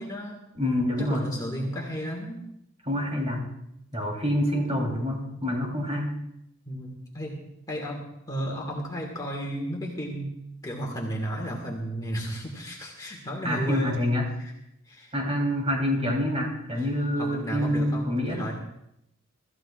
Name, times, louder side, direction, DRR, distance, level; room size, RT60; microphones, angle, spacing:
voice 1, 0.0-0.4 1.0-2.4 6.7-7.4 7.7-10.3 10.6-14.0 14.4-14.5 14.9-15.1 16.8-16.9 17.2-18.5, equal, 15° left, -1 dB, 1.9 m, -33 dB
voice 2, 0.6-1.2 2.9-3.5 3.9-6.1 13.4-14.3 15.1-18.4, left 1 dB, 30° right, -1 dB, 3.5 m, -27 dB
25.0 x 14.0 x 2.5 m, 0.79 s
head